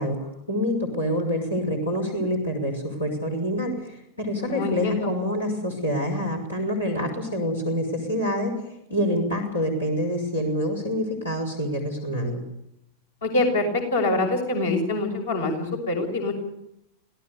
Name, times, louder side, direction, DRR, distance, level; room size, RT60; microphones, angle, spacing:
voice 1, 0.0-8.5 8.9-12.4, equal, 85° left, 1 dB, 6.0 m, -26 dB
voice 2, 4.4-5.1 13.2-16.3, left 2 dB, 65° left, 3 dB, 6.3 m, -25 dB
27.0 x 18.0 x 7.0 m, 0.80 s
figure-of-eight pair, 90°, 0 cm